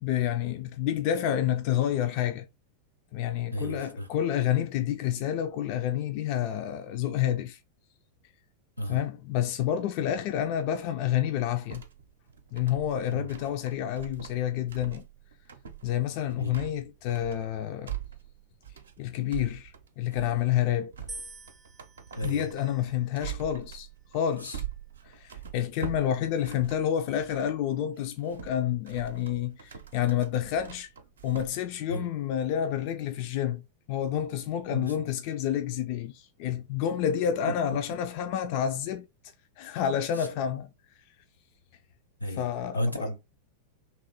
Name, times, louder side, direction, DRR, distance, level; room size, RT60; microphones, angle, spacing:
voice 1, 0.0-2.5 3.1-7.6 8.9-11.8 12.5-15.1 15.8-17.9 19.0-20.9 22.2-23.9 24.1-24.6 25.0-30.9 31.2-33.6 33.9-39.1 39.6-40.7 42.3-43.1, left 10 dB, 45° left, 0.3 m, -29 dB
voice 2, 3.5-4.1 8.8-9.0 13.1-13.3 16.4-16.5 22.2-22.5 24.4-24.5 31.9-32.0 34.7-34.9 42.2-42.4 42.7-43.2, equal, 90° left, 0.8 m, -32 dB
sound 1, 11.7-27.6 28.0-31.5, right 9 dB, 70° right, 0.6 m, -43 dB
sound 2, 21.1-23.3 24.1-24.6, right 1 dB, 10° right, 0.5 m, -47 dB
3.0 x 2.9 x 4.1 m
figure-of-eight pair, 90°, 0 cm